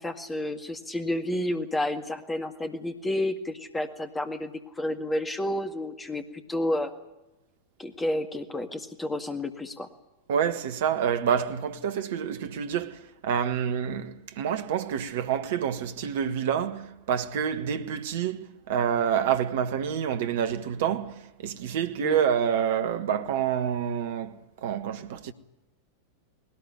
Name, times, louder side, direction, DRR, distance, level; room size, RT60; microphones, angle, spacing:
voice 1, 0.0-6.9 7.8-9.9 22.0-22.2, left 1 dB, 10° left, 1.9 m, -30 dB
voice 2, 10.3-25.3, right 8 dB, 55° right, 1.3 m, -28 dB
20.0 x 18.5 x 10.0 m
figure-of-eight pair, 90°, 0 cm